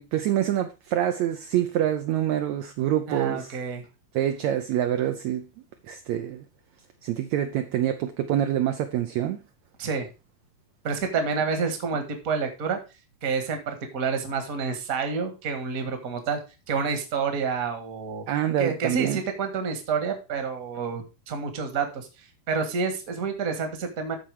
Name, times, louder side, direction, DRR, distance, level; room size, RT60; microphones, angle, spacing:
voice 1, 0.0-3.6 4.1-5.5 5.9-6.4 7.0-9.4 18.3-19.2, right 11 dB, 75° right, 1.7 m, -26 dB
voice 2, 3.1-3.9 9.8-10.1 10.8-12.8 13.2-16.4 16.7-18.2 18.6-24.1, right 5 dB, 35° right, 1.4 m, -29 dB
13.0 x 4.5 x 4.7 m
omnidirectional pair, 3.9 m